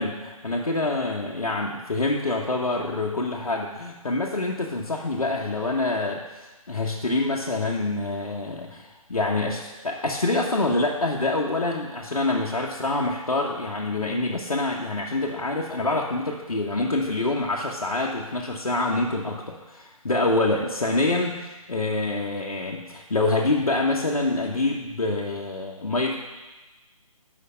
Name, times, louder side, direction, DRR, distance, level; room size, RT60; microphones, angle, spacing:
voice 1, 0.0-26.2, left 2 dB, 75° left, -3 dB, 1.1 m, -26 dB
8.3 x 5.7 x 5.5 m, 1.1 s
figure-of-eight pair, 140°, 18 cm